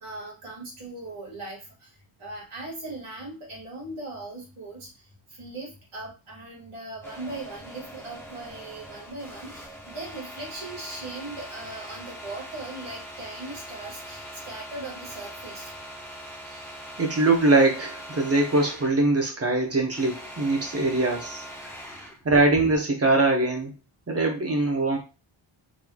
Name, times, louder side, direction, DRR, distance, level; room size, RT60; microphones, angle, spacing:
voice 1, 0.0-1.9 2.2-4.9 5.3-15.7, right 2 dB, 80° right, -3 dB, 1.8 m, -39 dB
sound 1, 7.0-19.0 19.4-22.2, equal, 5° left, 0.8 m, -42 dB
voice 2, 17.0-21.4 22.2-23.7 24.1-25.0, right 2 dB, 30° right, 1 dB, 0.9 m, -22 dB
4.0 x 3.1 x 2.3 m, 0.31 s
wide cardioid pair, 170°, 49 cm